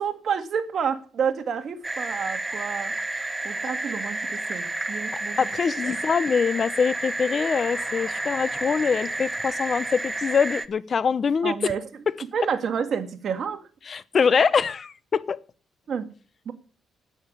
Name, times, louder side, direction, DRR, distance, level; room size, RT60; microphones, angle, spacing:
voice 1, 0.0-2.9 3.4-5.5 5.8-6.0 11.4-12.0 12.3-13.6 15.9-16.1 16.5-16.6, right 7 dB, 55° right, 2.0 m, -29 dB
sound 1, 1.8-10.7, right 2 dB, 15° right, 1.0 m, -31 dB
voice 2, 5.1-11.5 13.9-15.4, left 6 dB, 45° left, 0.8 m, -24 dB
9.7 x 9.0 x 9.8 m
cardioid pair, 90°, 0 cm